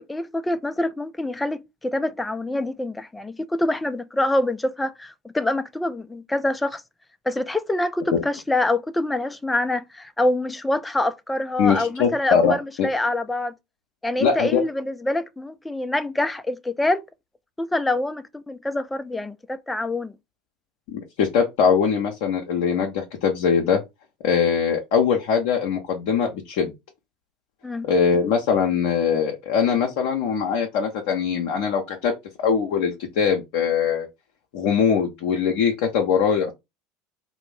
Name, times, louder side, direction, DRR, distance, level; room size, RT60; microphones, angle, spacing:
voice 1, 0.0-6.8 7.3-13.5 14.0-17.0 17.6-20.1 27.6-27.9, left 1 dB, 10° left, 0.4 m, -25 dB
voice 2, 11.6-12.9 14.2-14.6 20.9-23.8 24.2-26.7 27.8-32.1 32.4-34.1 34.5-36.5, left 6 dB, 65° left, 0.6 m, -22 dB
2.4 x 2.1 x 3.2 m
hypercardioid pair, 75°, 0 cm